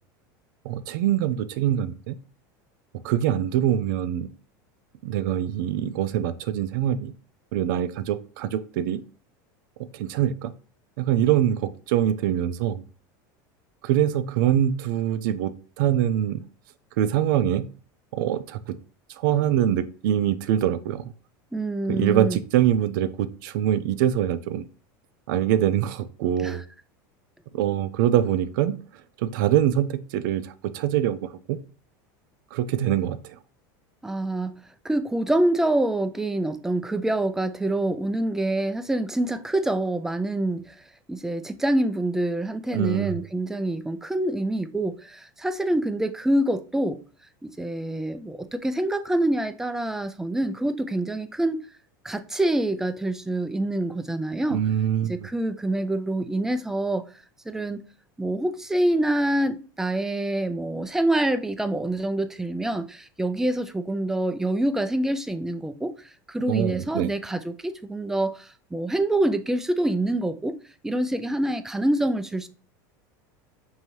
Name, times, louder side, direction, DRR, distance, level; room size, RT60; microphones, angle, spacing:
voice 1, 0.6-2.2 3.0-4.3 5.0-7.1 7.5-9.0 9.9-10.5 11.0-12.8 13.8-16.5 17.0-17.7 18.1-18.8 19.1-21.1 21.9-24.7 25.3-26.6 27.5-28.9 29.2-31.6 32.5-33.4 42.7-43.2 54.5-55.3 66.5-67.1, right 11 dB, 75° right, 0.5 m, -24 dB
voice 2, 21.5-22.4 26.4-26.6 34.0-40.8 41.1-47.0 47.4-51.7 52.0-54.6 55.0-57.0 57.5-57.8 58.2-66.0 66.3-70.6 70.8-72.5, right 1 dB, 5° right, 0.3 m, -26 dB
5.4 x 2.7 x 3.0 m
supercardioid pair, 135°, 11 cm